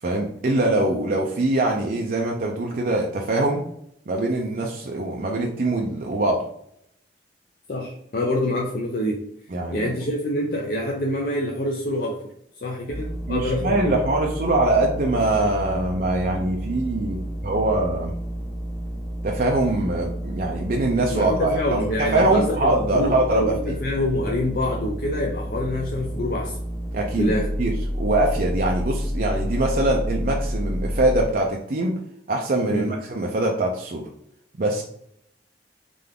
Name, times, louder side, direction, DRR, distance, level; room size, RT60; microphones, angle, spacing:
voice 1, 0.0-3.6 4.1-6.5 9.5-9.9 13.3-18.1 19.2-21.8 22.1-23.5 26.9-32.0 32.3-34.1 34.6-34.8, right 2 dB, 50° right, 0 dB, 0.5 m, -23 dB
voice 2, 7.7-9.2 9.7-12.2 12.6-14.0 21.1-26.6 27.2-27.5 32.7-32.9, left 1 dB, 50° left, -1 dB, 0.6 m, -26 dB
sound 1, 12.9-31.2, equal, 5° left, 1.1 m, -30 dB
3.7 x 3.3 x 3.6 m, 0.72 s
head